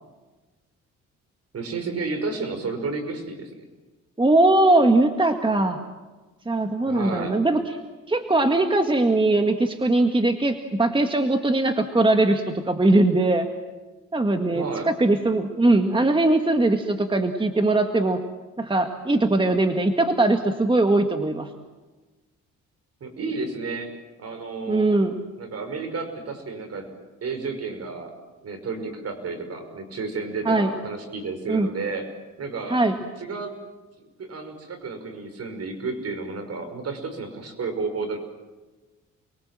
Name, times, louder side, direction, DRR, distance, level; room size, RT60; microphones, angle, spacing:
voice 1, 1.5-3.6 6.9-7.4 14.5-14.9 23.0-23.9 24.2-24.9 25.4-26.9 27.2-28.1 28.4-32.1 32.4-32.8 33.2-33.5 34.2-38.2, right 4 dB, 55° right, 6 dB, 5.7 m, -31 dB
voice 2, 4.2-5.8 6.5-7.8 8.1-13.5 14.1-18.2 18.6-21.5 24.7-25.1 30.5-30.7 31.5-31.7 32.7-33.0, right 2 dB, 15° right, 6 dB, 1.9 m, -20 dB
29.5 x 22.5 x 7.7 m, 1.2 s
cardioid pair, 90°, 30 cm